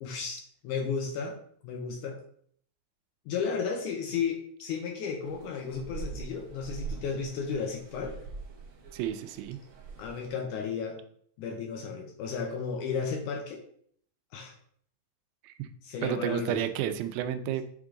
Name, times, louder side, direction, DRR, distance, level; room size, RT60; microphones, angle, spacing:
voice 1, 0.0-1.4 1.6-2.2 3.3-8.1 10.0-11.0 11.4-13.6 14.3-14.5 15.8-16.7, left 5 dB, 75° left, 2 dB, 2.1 m, -33 dB
sound 1, 5.2-10.3, right 5 dB, 65° right, 1.3 m, -43 dB
voice 2, 8.9-9.6 15.4-15.7 16.0-17.6, right 10 dB, 85° right, 10 dB, 2.3 m, -31 dB
8.3 x 3.6 x 3.7 m, 0.62 s
omnidirectional pair, 4.1 m